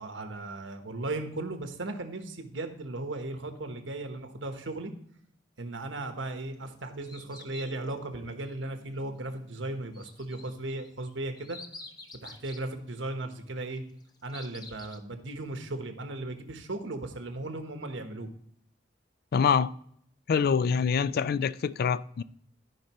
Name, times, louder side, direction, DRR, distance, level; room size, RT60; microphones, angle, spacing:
voice 1, 0.0-4.9 5.6-11.6 12.2-13.8 14.2-18.3, right 2 dB, 90° right, 1.2 m, -36 dB
sound 1, 6.4-8.0 9.9-12.7 13.8-15.0, left 3 dB, 20° left, 0.7 m, -48 dB
voice 2, 19.3-19.7 20.3-22.2, left 6 dB, 55° left, 0.3 m, -25 dB
14.5 x 5.3 x 3.0 m
head